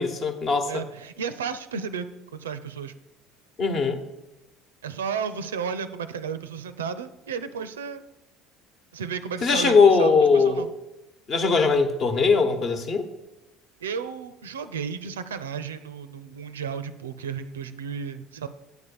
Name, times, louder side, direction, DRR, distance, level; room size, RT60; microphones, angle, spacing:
voice 1, 0.0-0.7 3.6-4.0 9.4-10.7 11.3-13.1, left 4 dB, 45° left, 7 dB, 1.1 m, -20 dB
voice 2, 0.7-2.1 2.3-2.9 4.8-8.0 8.9-10.7 13.8-18.5, right 6 dB, 80° right, 12 dB, 0.4 m, -33 dB
8.2 x 4.2 x 6.9 m, 0.99 s
figure-of-eight pair, 65°, 0 cm